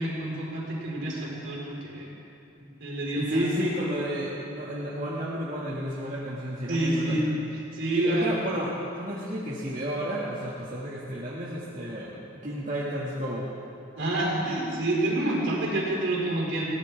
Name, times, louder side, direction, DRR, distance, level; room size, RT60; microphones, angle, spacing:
voice 1, 0.0-2.1 2.8-3.5 6.7-8.3 14.0-16.6, right 1 dB, 60° right, -5 dB, 4.5 m, -28 dB
voice 2, 3.2-7.2 7.9-13.5, equal, 40° right, -8 dB, 1.9 m, -31 dB
21.5 x 16.5 x 3.5 m, 2.6 s
head